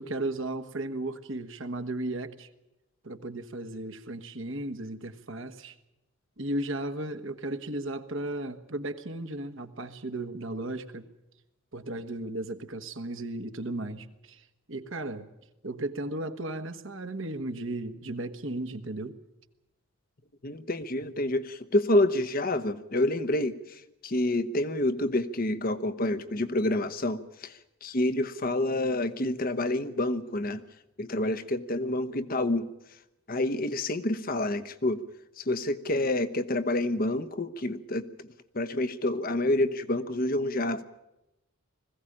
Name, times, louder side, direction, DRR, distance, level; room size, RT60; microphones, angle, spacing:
voice 1, 0.0-2.5 3.0-5.8 6.4-11.1 11.7-15.3 15.6-19.2, right 2 dB, 60° right, 8 dB, 1.4 m, -35 dB
voice 2, 20.4-27.5 27.8-30.6 31.0-32.7 33.3-35.0 35.4-38.1 38.5-40.8, left 1 dB, 40° left, 12 dB, 0.9 m, -28 dB
21.0 x 16.0 x 9.9 m, 0.91 s
head